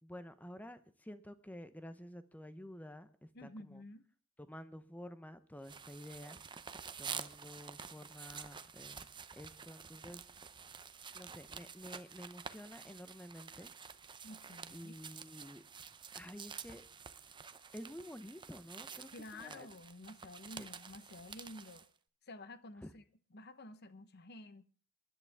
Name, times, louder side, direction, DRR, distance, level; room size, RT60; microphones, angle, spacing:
voice 1, 0.0-3.8 4.4-6.4 7.0-10.2 11.1-13.7 14.7-15.6 16.1-16.8 17.7-19.7 20.6-20.7 22.8-22.9, equal, 10° left, 0.8 m, -50 dB
voice 2, 3.3-4.1 14.2-14.9 19.1-21.9 22.3-23.0 23.3-24.7, left 2 dB, 50° left, 1.1 m, -51 dB
sound 1, 5.6-21.9, right 6 dB, 25° right, 0.7 m, -49 dB
27.5 x 11.0 x 3.5 m
head